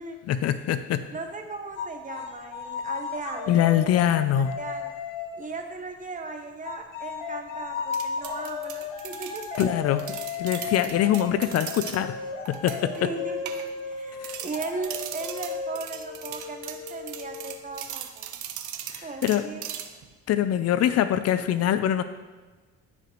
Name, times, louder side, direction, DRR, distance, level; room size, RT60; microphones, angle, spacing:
voice 1, 0.3-1.1 3.5-4.5 9.6-12.2 12.5-13.1 14.2-14.4 18.9-19.4 20.3-22.0, left 10 dB, 55° left, 11 dB, 0.5 m, -24 dB
voice 2, 1.1-4.0 4.3-4.9 5.4-9.4 11.7-11.8 13.0-13.5 13.9-18.3 19.0-19.6, right 3 dB, 25° right, 4 dB, 1.1 m, -37 dB
sound 1, 1.8-5.7 6.6-18.0, left 5 dB, 80° left, 1.2 m, -35 dB
sound 2, 7.9-12.0 12.5-13.0 13.5-14.0 14.2-20.1, right 10 dB, 75° right, 0.8 m, -38 dB
14.5 x 5.0 x 3.1 m, 1.3 s
cardioid pair, 105°, 30 cm